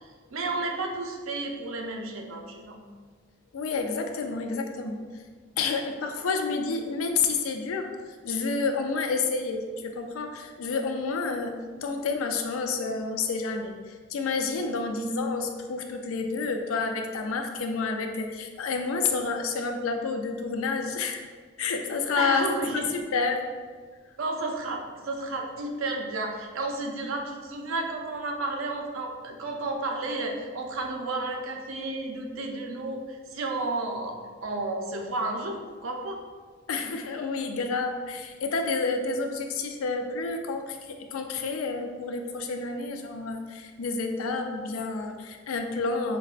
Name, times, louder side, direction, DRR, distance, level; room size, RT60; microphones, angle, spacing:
voice 1, 0.0-2.8 22.2-22.8 24.2-36.2, right 2 dB, 75° right, 2 dB, 0.5 m, -32 dB
voice 2, 3.5-5.0 5.6-7.9 8.2-21.2 21.6-22.5 22.9-23.5 36.7-46.2, left 4 dB, 80° left, 5 dB, 0.4 m, -29 dB
5.1 x 2.1 x 2.4 m, 1.5 s
head